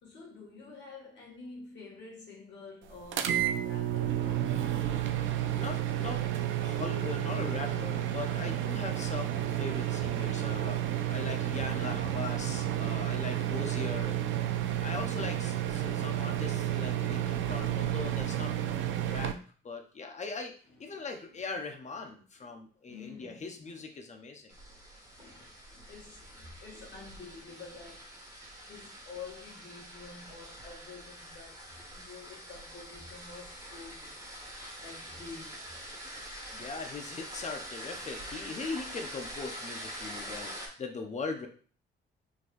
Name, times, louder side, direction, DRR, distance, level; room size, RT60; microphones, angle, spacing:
voice 1, 0.0-5.1 13.1-13.7 15.8-16.3 20.7-21.0 21.3-21.4 22.4-22.6 22.9-23.8 24.5-28.2 28.6-34.1 34.8-35.8 38.0-38.2 40.0-40.4, left 4 dB, 65° left, 1.7 m, -49 dB
sound 1, 3.1-19.3, right 12 dB, 75° right, 0.4 m, -31 dB
voice 2, 5.5-6.2 6.6-10.8 11.1-14.2 14.8-18.5 19.0-19.3 19.6-20.5 20.8-24.6 36.5-41.5, left 4 dB, 35° left, 0.8 m, -40 dB
sound 2, 24.5-40.7, equal, 20° right, 1.5 m, -45 dB
3.9 x 3.1 x 2.6 m
cardioid pair, 90°, 20 cm